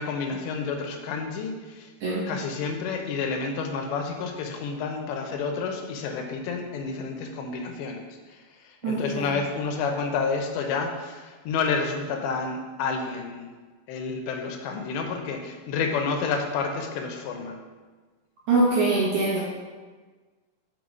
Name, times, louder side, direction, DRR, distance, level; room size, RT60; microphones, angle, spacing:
voice 1, 0.0-1.9 2.3-8.0 8.8-13.5 13.9-17.6, left 5 dB, 85° left, 4 dB, 3.0 m, -29 dB
voice 2, 8.8-9.3 18.5-19.4, right 2 dB, 65° right, -7 dB, 2.0 m, -23 dB
6.3 x 5.4 x 5.3 m, 1.4 s
omnidirectional pair, 5.0 m